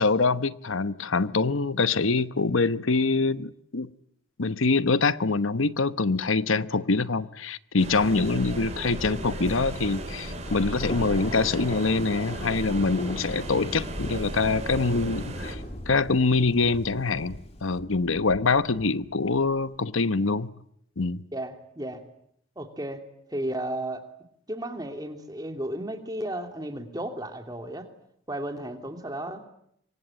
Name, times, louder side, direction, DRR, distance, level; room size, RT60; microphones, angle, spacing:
voice 1, 0.0-3.9 4.4-15.6 15.9-20.5 21.0-21.2, left 3 dB, 85° left, 1.0 m, -25 dB
sound 1, 7.8-15.5, right 1 dB, 35° right, 5.6 m, -35 dB
Thunder, 9.8-19.6, left 1 dB, 30° left, 2.9 m, -40 dB
voice 2, 21.3-22.0 22.6-23.0 23.3-24.0 24.5-27.9 28.3-29.4, right 1 dB, 20° right, 2.9 m, -33 dB
27.0 x 23.5 x 9.0 m
head